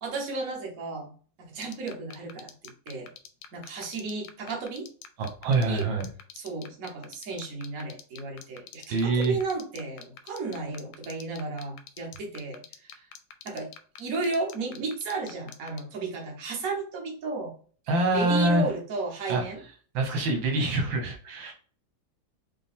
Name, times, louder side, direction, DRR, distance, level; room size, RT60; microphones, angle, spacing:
voice 1, 0.0-1.1 1.4-2.5 2.9-3.1 3.5-4.9 5.6-5.9 6.3-13.1 13.4-13.7 14.0-17.5 18.1-19.6, right 3 dB, 50° right, 0 dB, 1.4 m, -33 dB
sound 1, 1.6-15.8, left 10 dB, 90° left, 1.3 m, -44 dB
voice 2, 5.2-6.0 8.9-9.4 17.9-18.7 19.3-19.4 19.9-21.5, right 2 dB, 85° right, 3 dB, 1.7 m, -25 dB
5.5 x 2.2 x 3.5 m, 0.42 s
omnidirectional pair, 2.1 m